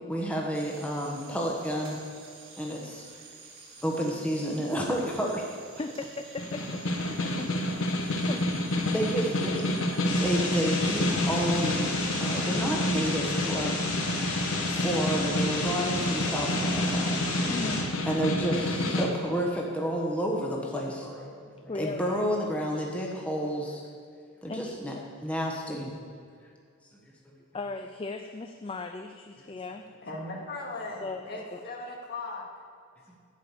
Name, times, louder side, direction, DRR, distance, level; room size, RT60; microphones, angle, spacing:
voice 1, 0.1-2.0 2.6-3.0 3.8-5.5 8.9-9.6 10.2-11.9 12.2-13.8 14.7-17.1 18.1-23.8 24.4-24.9 25.2-25.9, equal, 5° left, -2 dB, 1.1 m, -30 dB
sound 1, 0.5-12.5, right 4 dB, 60° right, 1.7 m, -50 dB
voice 2, 5.8-7.5 7.9-8.8 17.5-17.9 21.7-22.2 22.7-22.9 24.5-25.0 27.5-29.9 31.0-31.6, left 3 dB, 25° left, 6 dB, 0.4 m, -38 dB
Snare drum, 6.4-19.1, left 1 dB, 65° left, 1.1 m, -29 dB
sound 2, 10.0-17.8, left 2 dB, 85° left, 2.7 m, -33 dB
voice 3, 30.0-32.4, left 2 dB, 50° left, -2 dB, 2.0 m, -38 dB
11.5 x 5.1 x 8.3 m, 2.2 s
head